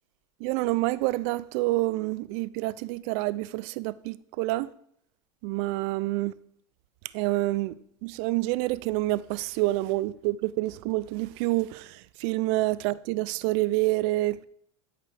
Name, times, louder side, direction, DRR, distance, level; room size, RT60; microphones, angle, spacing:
voice 1, 0.4-4.7 5.4-6.3 7.1-7.7 8.0-14.5, right 19 dB, 60° right, 0.4 m, -28 dB
13.0 x 4.9 x 3.3 m
supercardioid pair, 110°, 16 cm